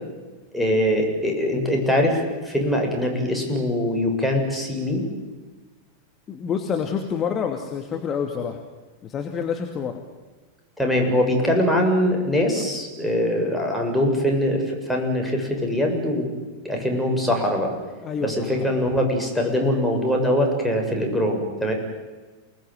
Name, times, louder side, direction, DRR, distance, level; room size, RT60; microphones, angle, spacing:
voice 1, 0.5-5.1 10.8-16.3 16.6-17.7 18.2-21.7, left 1 dB, ahead, 0 dB, 7.7 m, -22 dB
voice 2, 6.3-8.6 9.0-10.0 18.0-18.7, left 7 dB, 25° left, 4 dB, 2.6 m, -28 dB
29.5 x 20.0 x 9.4 m, 1.3 s
figure-of-eight pair, 90°, 0 cm